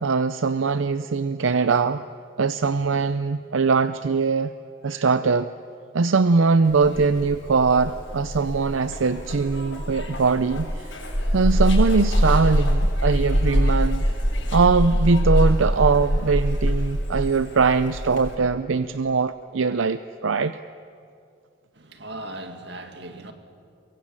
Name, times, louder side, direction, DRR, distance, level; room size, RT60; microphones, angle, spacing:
voice 1, 0.0-2.1 2.4-4.5 4.8-5.5 5.9-11.0 11.3-14.0 14.5-20.6, right 4 dB, 85° right, 0.6 m, -21 dB
Zipper (clothing), 6.6-18.4, equal, 80° left, 7.9 m, -24 dB
voice 2, 21.8-23.3, right 1 dB, 60° right, 2.3 m, -38 dB
24.0 x 22.5 x 8.9 m
head